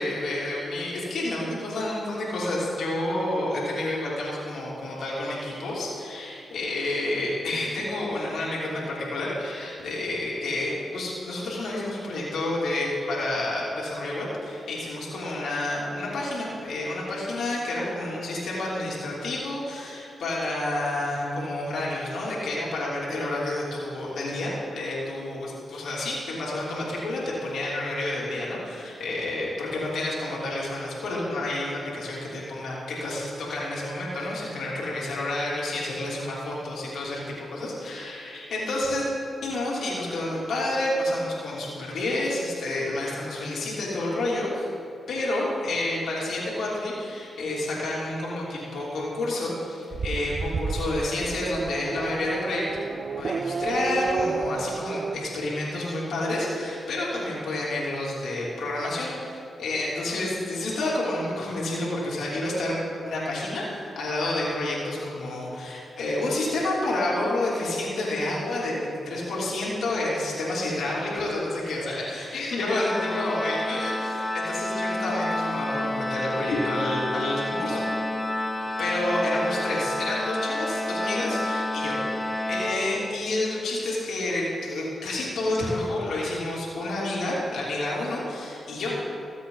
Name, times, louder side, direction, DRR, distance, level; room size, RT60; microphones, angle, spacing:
voice 1, 0.0-39.0 39.4-44.7 45.1-52.7 53.2-62.8 63.0-77.8 78.8-81.9 82.3-88.9, left 1 dB, 75° left, -6 dB, 3.2 m, -29 dB
Race car auto racing / Accelerating revving vroom, 49.9-55.2, right 4 dB, 55° right, 0.4 m, -31 dB
Organ, 72.7-83.4, left 1 dB, 20° left, 0.9 m, -29 dB
21.5 x 7.9 x 4.0 m, 2.7 s
supercardioid pair, 50°, 0 cm